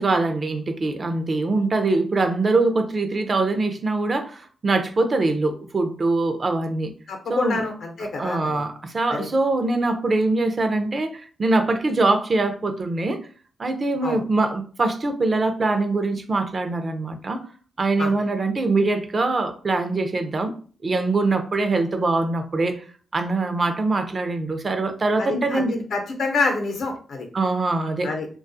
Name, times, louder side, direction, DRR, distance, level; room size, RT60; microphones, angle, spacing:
voice 1, 0.0-6.9 7.3-7.6 8.2-13.2 13.6-17.4 17.8-20.5 20.8-22.8 23.1-25.8 27.3-28.1, right 2 dB, 45° right, 0.4 m, -23 dB
voice 2, 7.1-8.7 9.1-9.3 14.0-14.2 18.0-18.1 25.2-27.3 28.0-28.3, left 3 dB, 75° left, 0.7 m, -27 dB
2.3 x 2.3 x 2.6 m
supercardioid pair, 55°, 0 cm